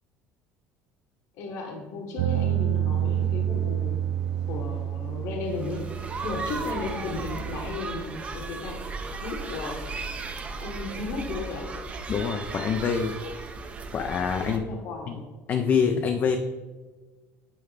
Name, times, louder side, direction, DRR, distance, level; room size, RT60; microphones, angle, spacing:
voice 1, 1.4-4.0 4.5-5.9 6.2-8.8 9.2-9.9 10.6-11.7 14.4-15.3, left 3 dB, 60° left, 2 dB, 1.1 m, -35 dB
sound 1, 2.2-7.7, right 10 dB, 80° right, 0.4 m, -29 dB
sound 2, 3.0-10.5, right 2 dB, 35° right, 1.4 m, -52 dB
sound 3, 5.5-14.6, right 4 dB, 20° right, 0.5 m, -36 dB
voice 2, 12.1-13.2 13.9-14.6 15.1-15.2 15.5-16.4, left 6 dB, 30° left, 6 dB, 0.4 m, -25 dB
8.4 x 4.5 x 3.2 m, 1.3 s
cardioid pair, 155°, 6 cm